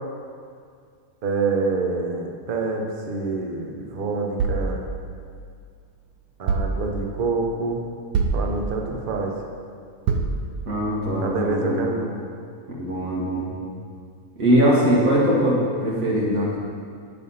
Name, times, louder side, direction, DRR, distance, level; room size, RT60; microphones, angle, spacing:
voice 1, 1.2-4.9 6.4-7.8 8.3-9.3 11.2-12.2, right 3 dB, 45° right, 2 dB, 0.7 m, -26 dB
sound 1, 4.4-5.8 6.5-7.3 8.1-9.0 10.1-10.9, right 4 dB, 90° right, 1.1 m, -27 dB
voice 2, 10.7-11.9 12.8-13.6 14.4-16.6, equal, 65° right, -5 dB, 1.9 m, -21 dB
8.9 x 3.4 x 5.4 m, 2.2 s
omnidirectional pair, 1.5 m